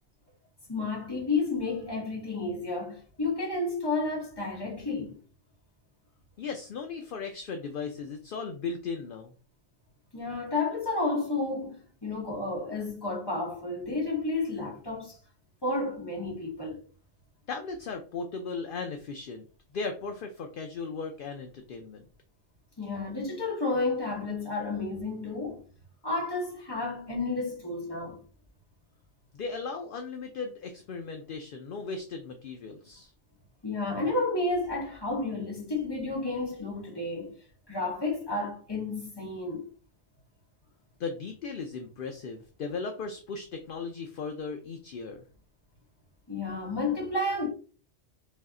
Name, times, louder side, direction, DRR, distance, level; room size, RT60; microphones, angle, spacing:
voice 1, 0.7-5.2 10.1-15.2 15.6-16.8 22.8-25.6 26.0-28.2 33.6-37.4 37.7-39.7 46.3-47.5, left 3 dB, 20° left, 1.2 m, -31 dB
voice 2, 6.4-9.3 17.5-19.4 19.7-22.1 29.3-33.1 41.0-45.2, left 4 dB, 60° left, 0.6 m, -37 dB
3.2 x 2.7 x 3.6 m
omnidirectional pair, 1.1 m